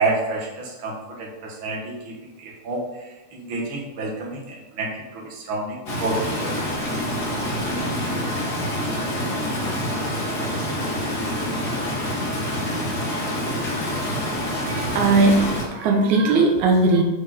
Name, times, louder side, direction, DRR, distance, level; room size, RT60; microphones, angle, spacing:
voice 1, 0.0-2.0 2.2-2.8 3.3-6.5, right 3 dB, 50° right, -2 dB, 2.2 m, -29 dB
Stream, 5.9-15.6, equal, 35° left, 2.2 m, -26 dB
voice 2, 14.6-17.0, right 3 dB, 85° right, 2 dB, 2.4 m, -19 dB
8.8 x 5.2 x 4.3 m, 1.1 s
omnidirectional pair, 3.3 m